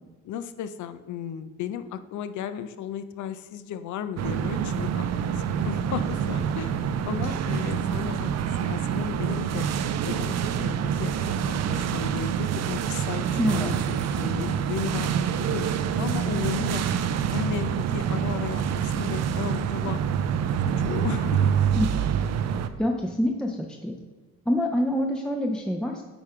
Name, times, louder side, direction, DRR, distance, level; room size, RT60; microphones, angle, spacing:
voice 1, 0.2-8.3 8.6-9.7 10.0-15.1 15.4-16.8 17.3-20.0 20.6-21.4, left 9 dB, 75° left, 12 dB, 0.5 m, -35 dB
sound 1, 4.2-22.7, right 8 dB, 60° right, 0.5 m, -26 dB
voice 2, 13.4-13.7 21.8-21.9 22.8-23.6 23.8-24.0 24.5-26.0, equal, ahead, 1 dB, 0.6 m, -25 dB
8.8 x 3.6 x 4.9 m, 1.2 s
cardioid pair, 90°, 30 cm